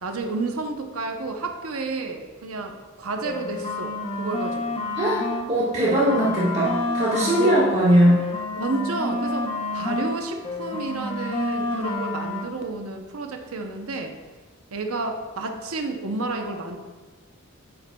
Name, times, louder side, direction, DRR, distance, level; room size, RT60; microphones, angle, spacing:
voice 1, 0.0-4.8 6.1-6.2 7.4-7.6 8.5-14.1 14.7-16.8, right 3 dB, 80° right, 4 dB, 0.8 m, -30 dB
sound 1, 3.2-5.5 5.8-10.2 10.4-12.5, left 2 dB, 25° left, 0.8 m, -29 dB
voice 2, 5.0-8.2, equal, 30° right, -7 dB, 1.6 m, -20 dB
9.4 x 7.8 x 2.3 m, 1.3 s
head